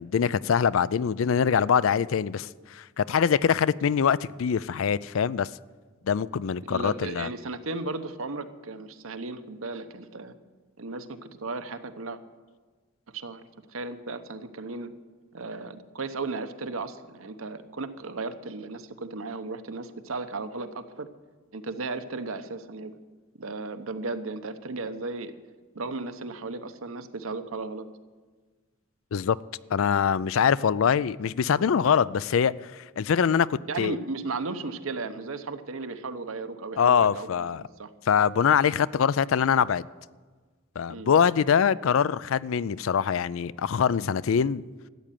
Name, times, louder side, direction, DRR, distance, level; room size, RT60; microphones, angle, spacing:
voice 1, 0.0-5.5 6.0-7.3 29.1-29.4 29.7-34.0 36.8-37.6 38.1-39.8 40.8-44.6, left 7 dB, 70° left, 19 dB, 0.4 m, -24 dB
voice 2, 6.7-10.4 10.8-12.2 13.1-13.4 13.7-14.9 15.3-21.1 21.5-23.0 23.4-25.3 25.7-27.9 33.7-37.3 37.6-37.9 40.9-41.1, right 3 dB, 85° right, 10 dB, 1.0 m, -35 dB
13.5 x 8.7 x 9.2 m, 1.4 s
head